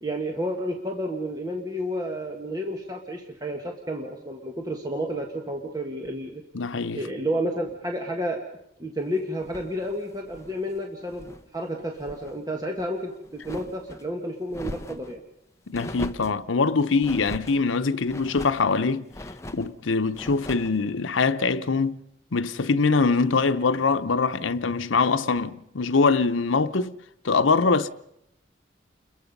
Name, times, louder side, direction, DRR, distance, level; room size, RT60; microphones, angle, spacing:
voice 1, 0.0-6.4 6.9-8.4 8.8-15.2, equal, 20° right, 1.5 m, -31 dB
voice 2, 6.5-7.0 15.7-19.1 19.5-22.0 22.3-26.9 27.2-27.9, left 4 dB, 85° left, 0.8 m, -23 dB
sound 1, 9.4-11.5 11.8-12.4 12.7-14.0 14.5-15.2 15.7-16.4 17.0-17.6 18.1-18.7 19.1-19.7 20.1-20.8, left 1 dB, 15° left, 0.9 m, -40 dB
29.5 x 21.5 x 5.4 m
head